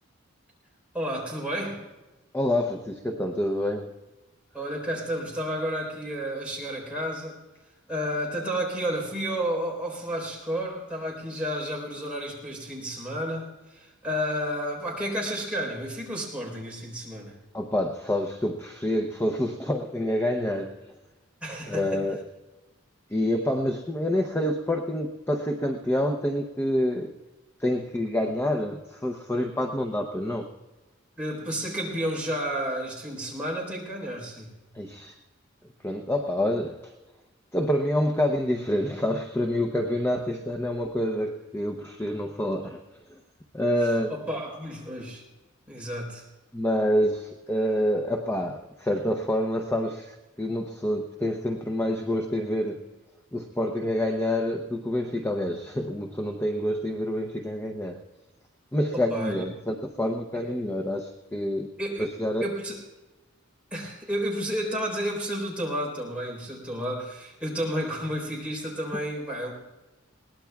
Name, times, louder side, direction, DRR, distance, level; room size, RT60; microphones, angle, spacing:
voice 1, 0.9-1.9 4.5-7.4 7.9-17.3 21.4-22.0 31.2-34.5 44.1-45.2 45.7-46.2 58.9-59.4 60.3-60.4 61.8-62.1 62.4-62.8 63.7-69.5, equal, 5° right, -3 dB, 3.8 m, -31 dB
voice 2, 2.3-3.9 17.5-20.9 21.7-22.2 23.1-27.1 27.6-30.5 34.7-35.2 35.8-36.9 37.5-42.8 43.1-43.2 43.5-44.1 46.5-52.8 53.3-58.0 58.7-61.7 62.0-62.5 68.9-69.0, left 1 dB, 10° left, 3 dB, 0.7 m, -27 dB
21.5 x 18.5 x 2.3 m, 1.1 s
head